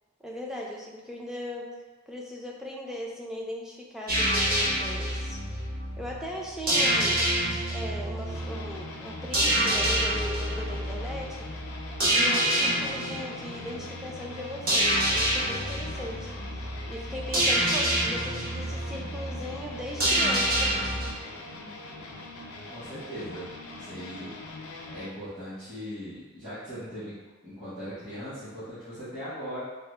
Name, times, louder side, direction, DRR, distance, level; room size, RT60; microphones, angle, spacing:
voice 1, 0.2-1.7 2.1-5.4 6.0-7.3 7.7-11.5 12.0-16.3 16.6-20.7, left 1 dB, ahead, -2 dB, 0.4 m, -38 dB
sound 1, 4.1-21.1, right 1 dB, 45° right, 0.9 m, -27 dB
sound 2, 8.3-25.1, left 2 dB, 80° left, 0.5 m, -42 dB
voice 2, 22.7-23.5 23.7-24.3 24.9-27.2 27.4-29.6, equal, 20° right, -14 dB, 1.1 m, -39 dB
3.8 x 2.1 x 3.2 m, 1.2 s
head